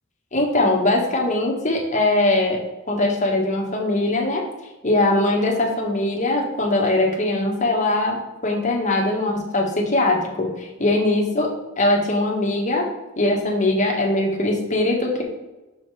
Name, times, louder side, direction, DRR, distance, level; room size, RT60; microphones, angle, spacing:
voice 1, 0.3-2.6 2.9-4.4 4.8-11.5 11.8-12.9 13.2-15.2, left 2 dB, 35° left, 0 dB, 1.4 m, -21 dB
6.2 x 5.1 x 4.8 m, 1.1 s
head